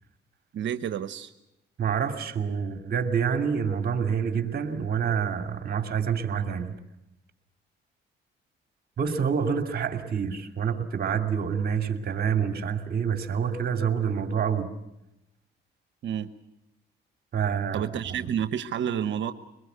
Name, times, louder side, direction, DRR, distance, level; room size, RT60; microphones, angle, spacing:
voice 1, 0.5-1.3 16.0-16.3 17.7-19.3, right 9 dB, 70° right, 11 dB, 1.1 m, -29 dB
voice 2, 1.8-6.7 9.0-14.7 17.3-17.8, right 7 dB, 50° right, 6 dB, 2.6 m, -27 dB
23.5 x 21.0 x 8.1 m, 0.91 s
cardioid pair, 90°, 20 cm